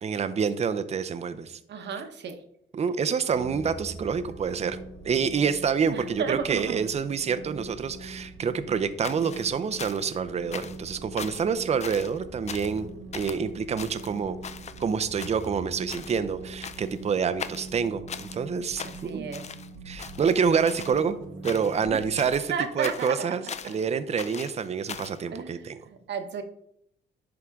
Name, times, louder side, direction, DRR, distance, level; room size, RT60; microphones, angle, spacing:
voice 1, 0.0-1.6 2.7-4.8 5.0-14.4 14.8-19.3 19.9-21.2 21.4-25.8, right 6 dB, 35° right, 11 dB, 0.5 m, -27 dB
voice 2, 1.7-2.4 5.9-6.8 18.8-19.4 22.5-23.1 25.3-26.4, right 6 dB, 60° right, 7 dB, 1.0 m, -33 dB
sound 1, 3.3-22.3, right 2 dB, 80° right, 1.2 m, -43 dB
sound 2, 9.0-10.2 10.5-10.9 11.2-11.5 11.8-12.2 12.5-12.8 13.1-13.4 13.8-14.9 15.2-15.6 15.9-16.2 16.6-17.0 17.4-18.4 18.8-19.7 20.0-21.0 21.4-21.9 22.2-23.8 24.2-25.2, left 7 dB, 35° left, 0.4 m, -40 dB
11.0 x 3.7 x 3.5 m, 0.74 s
cardioid pair, 90°, 20 cm